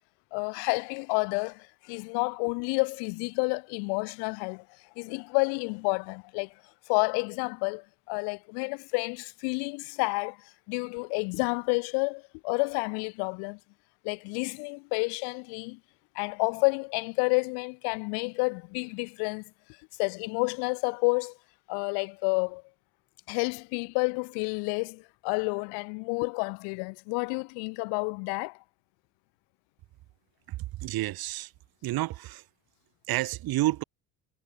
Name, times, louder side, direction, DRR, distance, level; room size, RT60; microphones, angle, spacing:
voice 1, 0.3-4.6 5.0-6.5 6.9-13.6 14.0-15.8 16.1-19.4 20.0-21.3 21.7-22.6 23.3-28.6, left 37 dB, 80° left, 0.7 m, -30 dB
voice 2, 30.5-31.5 31.8-32.4 33.1-33.8, right 16 dB, 60° right, 2.1 m, -30 dB
supercardioid pair, 95°, 40 cm